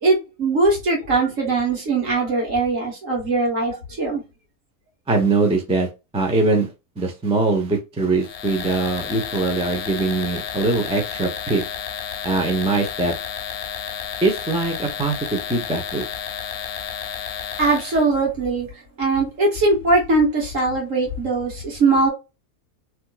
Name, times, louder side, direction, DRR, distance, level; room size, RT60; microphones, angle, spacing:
voice 1, 0.0-4.2 17.6-18.7 19.0-22.1, right 3 dB, 60° right, 1.8 m, -20 dB
voice 2, 5.1-5.9 6.1-6.7 7.0-11.6 12.2-13.1 14.2-16.0, right 3 dB, 10° right, 0.4 m, -22 dB
sound 1, 8.2-18.1, left 8 dB, 80° left, 1.1 m, -31 dB
3.2 x 2.9 x 2.3 m
omnidirectional pair, 1.6 m